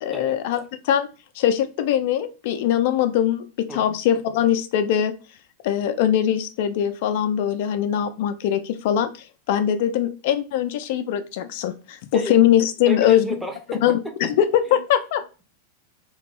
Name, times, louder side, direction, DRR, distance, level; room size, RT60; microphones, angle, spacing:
voice 1, 0.0-1.1 1.4-5.1 5.6-9.1 9.5-13.3 13.8-15.2, left 10 dB, 50° left, 10 dB, 0.3 m, -21 dB
voice 2, 12.9-14.0 14.2-14.3 14.7-14.8, right 1 dB, 5° right, 4 dB, 0.6 m, -32 dB
2.4 x 2.2 x 3.1 m, 0.32 s
figure-of-eight pair, 90°, 0 cm